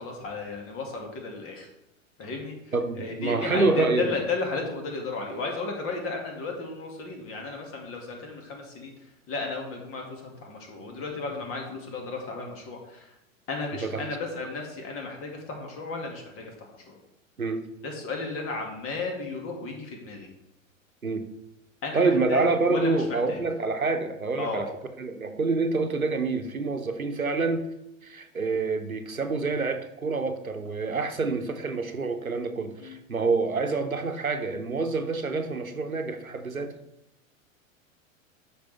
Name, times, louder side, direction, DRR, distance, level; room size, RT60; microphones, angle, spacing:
voice 1, 0.0-1.7 2.2-2.6 3.0-8.9 9.3-13.1 13.5-17.0 17.8-20.3 21.8-23.4 24.4-24.6 32.8-33.0, left 3 dB, 35° left, 1 dB, 2.2 m, -34 dB
voice 2, 2.7-4.1 13.8-14.1 17.4-17.6 21.0-21.2 21.9-24.7 25.0-27.7 28.0-36.7, right 3 dB, 90° right, 7 dB, 0.9 m, -27 dB
12.5 x 4.8 x 3.5 m, 0.88 s
figure-of-eight pair, 90°, 41 cm